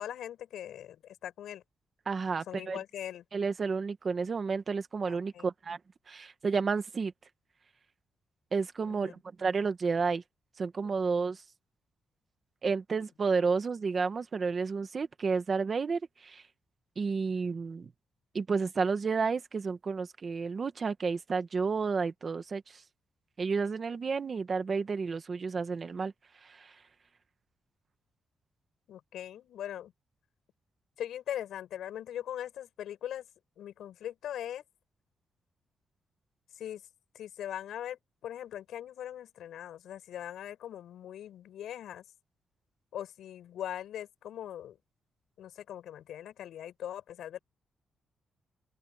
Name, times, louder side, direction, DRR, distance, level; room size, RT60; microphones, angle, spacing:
voice 1, 0.0-1.6 2.5-3.2 5.0-5.5 8.9-9.1 12.9-13.0 28.9-29.9 31.0-33.2 33.6-34.6 36.6-36.8 37.1-42.0 42.9-44.8 45.4-47.4, left 11 dB, 85° left, 7.4 m, -41 dB
voice 2, 2.1-2.8 3.3-5.8 6.1-7.1 8.5-10.2 10.6-11.4 12.6-16.4 17.0-17.9 18.3-22.8 23.4-26.1 26.4-26.7, right 5 dB, 30° right, 1.3 m, -31 dB
open air
wide cardioid pair, 180°, 0 cm